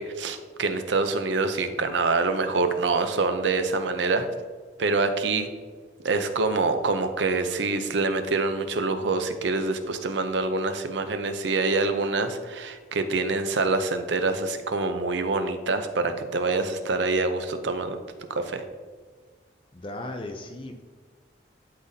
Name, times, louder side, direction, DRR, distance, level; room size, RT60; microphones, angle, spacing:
voice 1, 0.0-4.2 4.8-5.5 6.0-18.0 18.3-18.6, right 3 dB, 85° right, 8 dB, 0.6 m, -26 dB
voice 2, 19.7-20.8, left 1 dB, 30° left, 4 dB, 0.5 m, -36 dB
11.5 x 4.0 x 2.7 m, 1.5 s
head